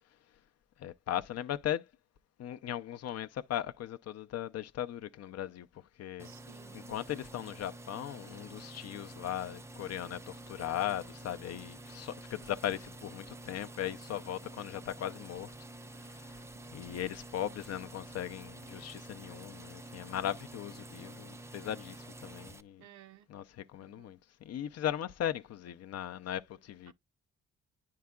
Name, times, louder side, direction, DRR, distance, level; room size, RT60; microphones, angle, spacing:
voice 1, 0.8-1.9 2.4-5.7 6.0-6.3 6.7-15.5 15.9-16.4 16.7-22.8 23.3-23.4 23.7-26.9, left 11 dB, 55° left, 0.5 m, -38 dB
sound 1, 6.2-22.6, right 1 dB, 10° right, 0.4 m, -49 dB
voice 2, 6.2-6.9 22.8-23.3 23.8-24.2 26.9-27.0, right 12 dB, 70° right, 0.7 m, -58 dB
9.4 x 4.7 x 2.3 m
cardioid pair, 90°, 30 cm